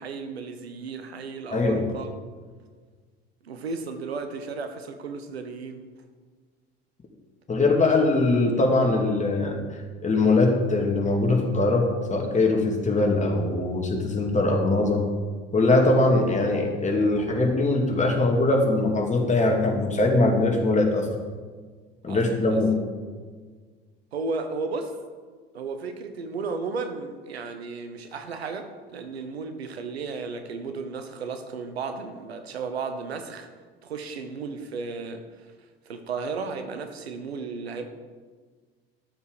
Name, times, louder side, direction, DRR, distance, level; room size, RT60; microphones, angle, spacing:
voice 1, 0.0-2.1 3.4-5.8 22.1-22.2 22.5-22.6 24.1-24.9 25.5-33.5 33.8-35.2 35.9-37.9, right 4 dB, 90° right, 8 dB, 0.9 m, -34 dB
voice 2, 1.5-1.9 7.5-9.6 10.0-15.0 15.5-21.1 22.0-22.7, left 2 dB, 25° left, 1 dB, 2.4 m, -22 dB
12.5 x 7.0 x 4.9 m, 1.5 s
hypercardioid pair, 70°, 31 cm